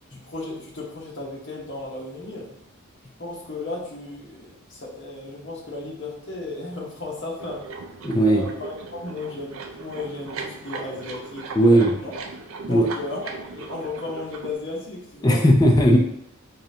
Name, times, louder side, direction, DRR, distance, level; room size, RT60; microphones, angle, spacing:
voice 1, 0.1-2.6 3.2-7.7 8.2-12.1 12.7-15.5, left 2 dB, 55° left, -3 dB, 1.0 m, -35 dB
sound 1, 7.4-14.5, right 3 dB, 75° right, 0.4 m, -38 dB
voice 2, 8.0-8.4 11.6-11.9 12.7-12.9 15.2-16.0, equal, 20° left, 2 dB, 0.3 m, -16 dB
3.8 x 3.2 x 2.7 m, 0.80 s
head